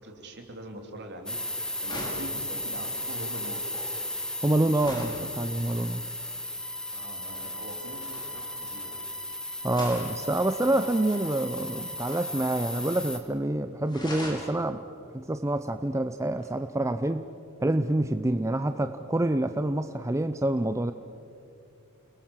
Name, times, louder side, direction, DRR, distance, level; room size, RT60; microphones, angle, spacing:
voice 1, 0.0-3.7 6.9-9.0, right 1 dB, 55° right, 3 dB, 3.5 m, -43 dB
sound 1, 1.3-13.2, left 1 dB, 5° left, 1.8 m, -35 dB
sound 2, 1.8-5.3 7.2-9.3 9.7-11.3 12.0-13.2 13.4-13.5 13.8-14.6 16.4-16.5, left 1 dB, 20° left, 5.5 m, -42 dB
voice 2, 4.4-6.0 9.6-14.8 15.1-17.3 17.6-20.9, right 1 dB, 15° right, 9 dB, 0.5 m, -27 dB
29.5 x 20.5 x 7.4 m, 2.7 s
head